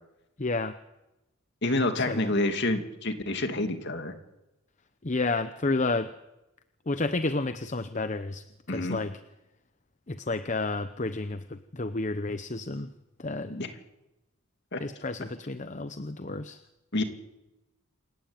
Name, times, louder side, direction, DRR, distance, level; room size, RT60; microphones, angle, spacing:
voice 1, 0.4-0.8 2.0-2.3 5.0-6.1 6.9-9.1 10.1-12.9 13.2-13.5 14.8-16.6, left 3 dB, 35° left, 11 dB, 0.8 m, -31 dB
voice 2, 1.6-4.1 8.7-9.0 13.4-13.7 14.7-14.8 16.9-17.0, left 2 dB, 50° left, 7 dB, 2.7 m, -28 dB
28.0 x 15.0 x 9.0 m, 0.96 s
head